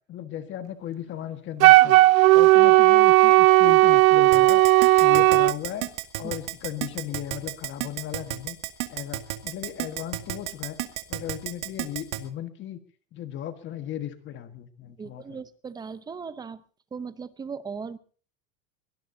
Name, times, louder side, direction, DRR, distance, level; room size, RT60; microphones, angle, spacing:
voice 1, 0.1-2.0 2.3-4.6 5.0-5.9 6.2-8.6 8.9-10.8 11.1-12.8 13.1-15.4, left 11 dB, 30° left, 10 dB, 1.5 m, -36 dB
Wind instrument woodwind instrument, 1.6-5.5, right 19 dB, 85° right, 0.6 m, -15 dB
Keyboard (musical), 4.3-12.2, right 21 dB, 60° right, 2.2 m, -31 dB
voice 2, 15.0-16.6 16.9-18.0, right 5 dB, 10° right, 14 dB, 0.7 m, -37 dB
23.0 x 19.5 x 2.7 m, 0.41 s
supercardioid pair, 160°, 40 cm